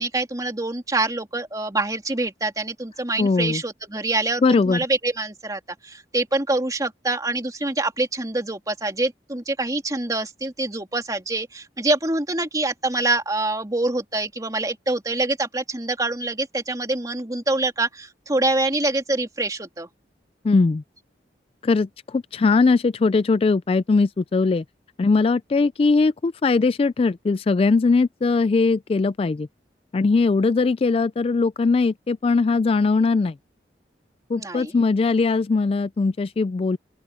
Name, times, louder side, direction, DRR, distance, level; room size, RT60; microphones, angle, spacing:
voice 1, 0.0-19.9 34.3-34.7, right 2 dB, 20° right, 2.9 m, -25 dB
voice 2, 3.2-3.6 4.4-4.8 20.4-20.8 21.6-24.6 25.0-29.5 29.9-33.3 34.3-36.8, left 4 dB, 35° left, 0.3 m, -20 dB
open air
head